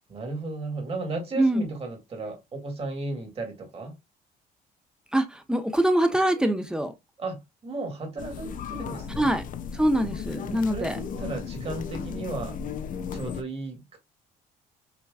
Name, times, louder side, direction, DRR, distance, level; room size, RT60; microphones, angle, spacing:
voice 1, 0.1-3.9 7.2-9.3 10.7-12.6 13.1-14.0, right 2 dB, 35° right, 2.3 m, -34 dB
voice 2, 5.1-6.9 9.2-9.4 9.7-11.0, right 1 dB, 5° right, 0.9 m, -24 dB
sound 1, 8.2-13.4, left 6 dB, 50° left, 0.6 m, -35 dB
5.9 x 3.1 x 2.4 m
cardioid pair, 110°, 17 cm